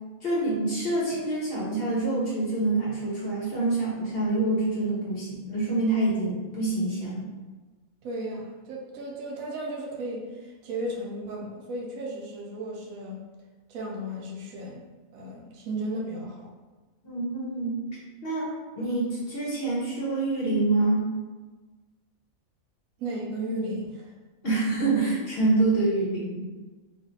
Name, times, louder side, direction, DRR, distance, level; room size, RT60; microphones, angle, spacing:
voice 1, 0.2-7.3 17.0-17.8 18.2-21.1 24.4-26.4, right 2 dB, 50° left, -6 dB, 1.0 m, -26 dB
voice 2, 8.0-13.2 13.7-14.8 15.1-16.5 23.0-24.1, right 1 dB, 80° right, -1 dB, 1.0 m, -34 dB
3.0 x 2.5 x 2.7 m, 1.3 s
omnidirectional pair, 1.5 m